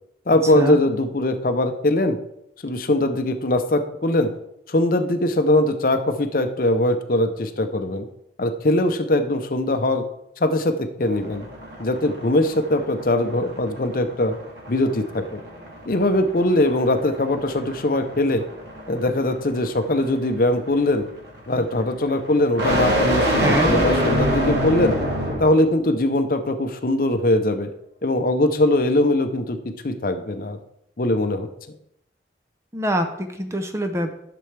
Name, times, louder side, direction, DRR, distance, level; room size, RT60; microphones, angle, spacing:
voice 1, 0.3-2.2 2.6-4.3 4.7-8.1 8.4-10.0 10.4-11.4 11.8-14.3 14.7-15.4 15.9-18.4 18.9-21.0 21.5-25.0 25.4-27.7 28.0-29.6 29.8-30.6 31.0-31.8, left 1 dB, 50° left, 8 dB, 0.6 m, -21 dB
sound 1, 11.0-25.6, equal, 80° right, 2.1 m, -27 dB
voice 2, 23.4-23.7 32.7-34.1, right 1 dB, 15° right, 6 dB, 0.6 m, -24 dB
11.0 x 6.8 x 3.3 m, 0.78 s
head